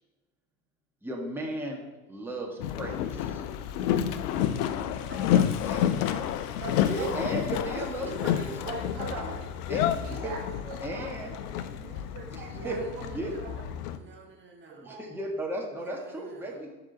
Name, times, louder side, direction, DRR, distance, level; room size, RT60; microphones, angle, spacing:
voice 1, 1.0-1.8 2.1-2.9 5.7-5.8 6.8-8.5 9.7-10.3 10.8-11.3 12.3-12.8 13.1-13.3 14.8-16.7, right 1 dB, 5° right, -2 dB, 1.9 m, -35 dB
Boat Water vehicle, 2.6-14.0, left 10 dB, 75° left, 0.6 m, -30 dB
voice 2, 5.1-6.4 7.8-8.5 9.0-9.5 12.5-15.0 15.8-16.8, right 3 dB, 25° right, 0 dB, 1.9 m, -47 dB
voice 3, 6.6-7.1 7.6-7.7 8.0-8.1 8.6-9.3 10.0-10.4 10.7-13.0 14.7-15.0, right 5 dB, 70° right, 0 dB, 1.7 m, -41 dB
11.0 x 3.9 x 4.2 m, 1.2 s
hypercardioid pair, 70°, 47 cm